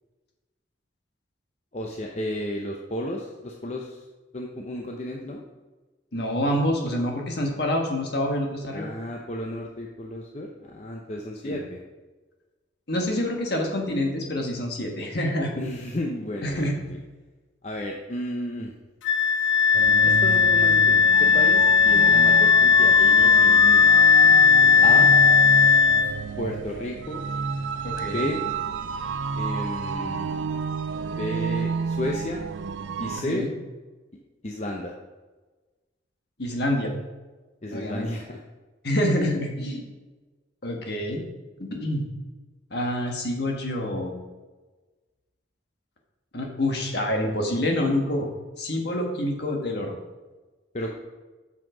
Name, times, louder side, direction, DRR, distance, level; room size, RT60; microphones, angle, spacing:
voice 1, 1.7-4.0 4.3-5.4 8.7-11.8 15.6-17.0 17.6-18.7 20.0-24.0 24.8-25.1 26.4-27.2 28.0-28.4 29.4-30.3 31.0-32.4 33.0-33.5 34.4-34.9 37.6-38.4 50.7-50.9, left 1 dB, 35° left, 0 dB, 0.6 m, -33 dB
voice 2, 6.1-8.9 11.4-11.6 12.9-15.5 16.4-16.7 27.8-28.3 33.2-33.5 36.4-36.9 37.7-38.1 38.8-39.8 40.6-41.2 41.6-42.1 42.7-44.1 46.3-48.3 48.6-49.9, left 1 dB, 55° left, 1 dB, 1.5 m, -27 dB
Wind instrument woodwind instrument, 19.0-26.1, left 6 dB, 75° left, 0.8 m, -16 dB
sound 1, 19.7-33.2, right 5 dB, 75° right, 0.4 m, -30 dB
7.8 x 5.7 x 5.0 m, 1.2 s
head